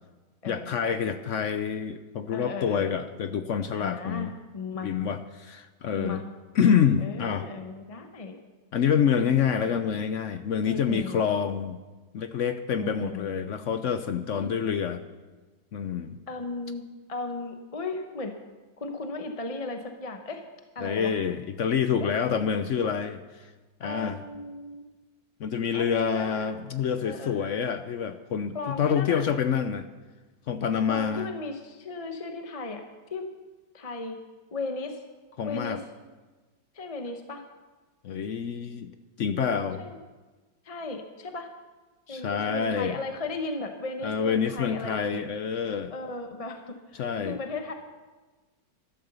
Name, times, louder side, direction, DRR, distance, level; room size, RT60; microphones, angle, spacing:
voice 1, 0.5-4.3 4.8-6.2 6.6-7.5 8.7-11.8 12.1-15.0 15.7-16.2 20.8-23.2 23.8-24.2 25.4-29.8 30.5-31.3 35.4-35.8 38.0-38.9 39.2-39.8 42.1-43.0 44.0-45.9 47.0-47.4, left 7 dB, 65° left, 10 dB, 0.7 m, -27 dB
voice 2, 2.3-3.0 3.8-4.3 4.5-4.9 6.0-6.2 7.0-8.4 9.6-10.0 10.7-11.2 12.8-13.3 14.3-14.5 16.3-16.8 17.1-18.3 18.8-20.4 20.7-21.1 22.0-22.1 23.8-24.9 25.7-26.5 27.0-27.7 28.5-29.2 30.9-32.8 33.1-33.3 33.7-34.2 34.5-35.0 35.4-35.8 36.7-37.4 39.8-40.0 40.6-41.5 42.1-45.2 45.9-47.7, left 3 dB, 30° left, 5 dB, 0.7 m, -36 dB
12.5 x 12.0 x 6.8 m, 1.3 s
omnidirectional pair, 1.9 m